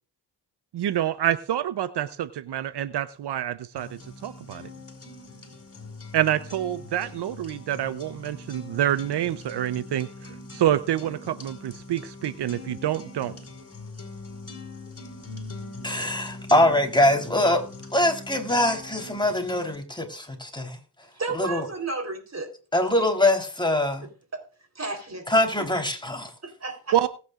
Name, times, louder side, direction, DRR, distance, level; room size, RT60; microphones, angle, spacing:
voice 1, 0.7-3.9 4.2-4.7 6.1-13.3 26.9-27.1, right 11 dB, 75° right, 0.8 m, -27 dB
sound 1, 3.8-19.8, left 3 dB, 35° left, 4.7 m, -42 dB
voice 2, 15.8-17.6 17.9-20.8 21.3-21.7 22.7-24.0 25.3-26.3, left 1 dB, 10° left, 3.7 m, -23 dB
voice 3, 21.1-22.5 23.0-23.1 24.0-24.5 24.8-25.3 25.6-25.8 26.4-27.0, right 3 dB, 40° right, 3.9 m, -33 dB
19.5 x 9.4 x 2.5 m
cardioid pair, 55°, 41 cm